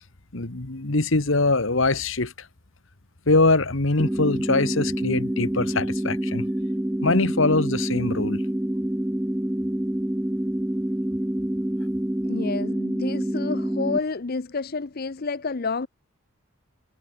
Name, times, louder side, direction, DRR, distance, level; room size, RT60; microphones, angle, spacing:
voice 1, 0.3-2.3 3.3-6.4 7.0-8.4, left 3 dB, 60° left, 1.6 m, -22 dB
sound 1, 4.0-14.0, right 1 dB, 5° right, 0.4 m, -27 dB
voice 2, 12.3-15.9, left 4 dB, 45° left, 0.6 m, -29 dB
head